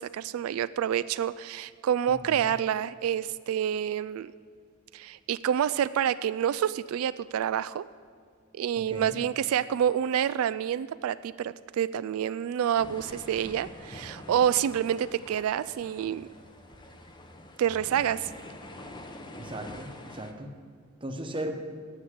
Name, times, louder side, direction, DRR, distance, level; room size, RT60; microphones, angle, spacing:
voice 1, 0.0-4.3 4.9-7.9 8.5-16.3 17.6-18.3, right 9 dB, 90° right, 15 dB, 0.3 m, -28 dB
voice 2, 2.1-2.5 8.8-9.2 19.4-20.5 21.0-21.5, right 1 dB, 25° right, 5 dB, 1.0 m, -37 dB
sound 1, 12.8-20.3, left 1 dB, 20° left, 0.9 m, -46 dB
9.8 x 8.6 x 9.4 m, 2.1 s
head